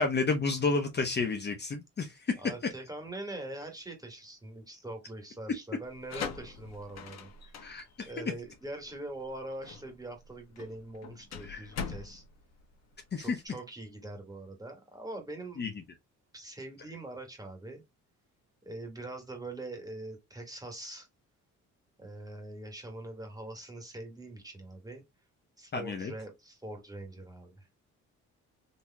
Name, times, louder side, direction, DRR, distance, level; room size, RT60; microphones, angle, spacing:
voice 1, 0.0-2.4 7.6-8.1 11.4-11.7 13.1-13.4 15.6-15.7 25.7-26.1, left 4 dB, 35° left, 0.8 m, -31 dB
voice 2, 2.4-7.5 8.0-12.2 13.2-15.7 16.3-17.8 18.6-21.1 22.0-25.0 25.6-27.7, right 1 dB, 10° right, 1.6 m, -43 dB
sound 1, 5.8-13.4, left 6 dB, 60° left, 1.1 m, -43 dB
4.0 x 2.8 x 2.2 m
cardioid pair, 90°, 30 cm